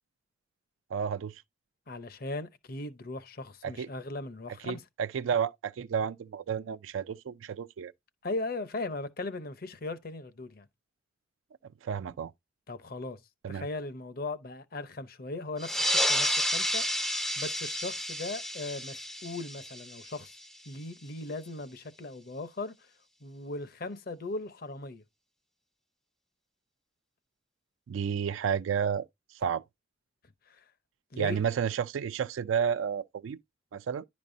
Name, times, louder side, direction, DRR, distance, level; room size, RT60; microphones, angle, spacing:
voice 1, 0.9-1.4 3.6-3.9 4.7-7.9 11.8-12.3 13.4-13.7 27.9-29.1 29.3-29.6 31.2-33.4 33.7-34.1, right 7 dB, 85° right, 0.3 m, -31 dB
voice 2, 1.9-4.8 8.2-10.7 12.7-13.2 13.5-16.9 17.4-20.4 20.7-22.9 23.2-25.0 30.5-30.6 31.1-31.4, left 2 dB, 50° left, 0.7 m, -38 dB
sound 1, 15.6-20.7, equal, 5° left, 0.4 m, -31 dB
10.5 x 5.2 x 2.6 m
head